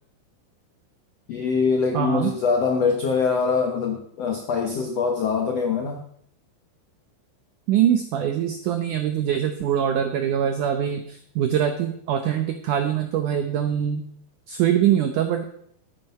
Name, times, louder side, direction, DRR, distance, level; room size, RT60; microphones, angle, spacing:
voice 1, 1.3-6.0, left 5 dB, 75° left, 3 dB, 1.4 m, -23 dB
voice 2, 1.9-2.3 7.7-14.0 14.5-15.4, right 9 dB, 80° right, 7 dB, 1.8 m, -23 dB
12.0 x 9.5 x 5.5 m, 0.65 s
omnidirectional pair, 4.8 m